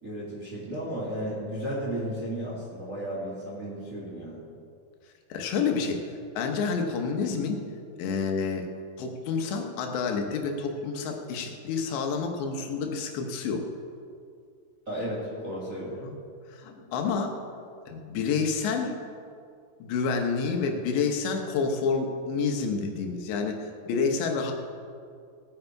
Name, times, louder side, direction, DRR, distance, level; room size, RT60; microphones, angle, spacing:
voice 1, 0.0-4.4 14.9-15.9, equal, 25° right, -5 dB, 2.0 m, -34 dB
voice 2, 5.3-7.6 7.9-8.7 9.0-13.7 16.0-16.1 16.5-17.4 17.9-19.0 19.8-23.6 23.9-24.5, left 5 dB, 85° left, 3 dB, 3.4 m, -29 dB
18.5 x 9.1 x 4.6 m, 2.3 s
omnidirectional pair, 5.0 m